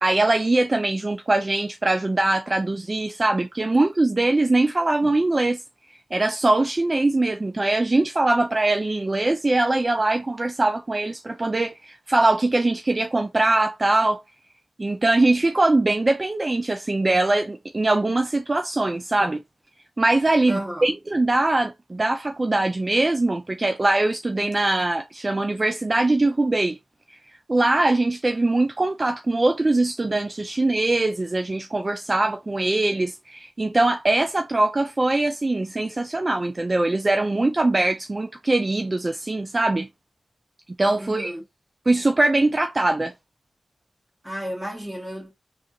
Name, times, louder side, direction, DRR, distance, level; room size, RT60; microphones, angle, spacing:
voice 1, 0.0-5.6 6.1-14.2 14.8-19.4 20.0-26.8 27.5-39.9 40.8-41.3 41.9-43.1, right 2 dB, 35° right, 0.3 m, -22 dB
voice 2, 20.5-20.9 41.0-41.4 44.2-45.3, equal, 15° right, 1.7 m, -32 dB
3.4 x 2.4 x 2.7 m
cardioid pair, 55°, 0 cm